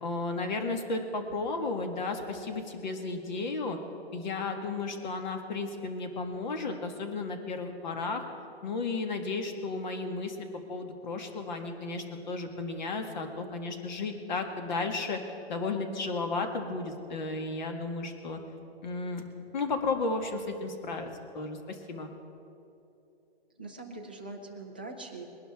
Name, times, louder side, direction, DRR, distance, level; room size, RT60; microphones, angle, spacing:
voice 1, 0.0-3.8 4.1-8.2 8.6-15.2 15.5-18.4 18.8-19.2 19.5-21.1 21.3-22.1, left 3 dB, 45° left, 5 dB, 1.8 m, -33 dB
voice 2, 23.6-25.2, right 2 dB, 10° right, -1 dB, 0.3 m, -42 dB
22.0 x 11.5 x 3.6 m, 2.8 s
hypercardioid pair, 160°, 32 cm